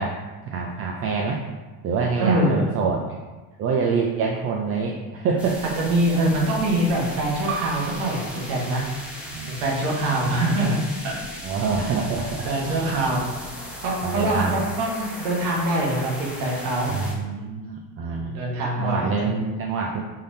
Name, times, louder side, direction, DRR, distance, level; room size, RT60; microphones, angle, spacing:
voice 1, 0.0-1.4 1.8-3.0 3.6-5.7 9.3-9.6 9.9-10.5 11.4-12.5 12.8-12.9 14.0-14.6 16.9-18.4 18.8-20.0, right 5 dB, 35° right, 0 dB, 0.4 m, -26 dB
voice 2, 2.2-2.6 5.8-8.8 9.5-11.2 11.9-12.0 12.4-13.2 13.8-17.2 18.0-19.1, right 1 dB, 90° right, -2 dB, 1.3 m, -24 dB
sound 1, 5.4-17.1, left 1 dB, 5° right, 0.9 m, -37 dB
sound 2, 7.5-12.6, right 6 dB, 70° right, 0.7 m, -40 dB
5.5 x 3.4 x 2.7 m, 1.2 s
cardioid pair, 140°, 40 cm